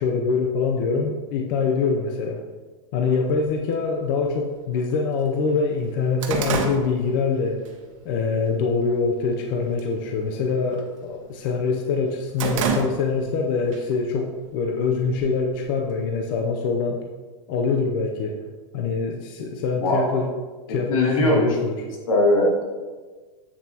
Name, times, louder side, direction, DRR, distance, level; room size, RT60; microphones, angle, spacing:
voice 1, 0.0-2.4 2.9-7.6 8.0-14.3 14.5-17.0 17.5-18.3 18.7-20.3 20.7-21.8, left 4 dB, 40° left, 1 dB, 0.6 m, -24 dB
sound 1, 3.3-3.4 4.3-4.4 4.9-5.0 5.3-7.7 8.1-8.4 8.9-9.4 9.7-10.0 10.3-11.5 11.9-13.4 13.7-13.8 14.7-15.6, right 5 dB, 75° right, 1.2 m, -29 dB
voice 2, 19.8-20.2 20.9-21.4 22.1-22.6, left 1 dB, 85° left, -2 dB, 2.4 m, -20 dB
8.2 x 7.2 x 2.9 m, 1.3 s
supercardioid pair, 175°, 17 cm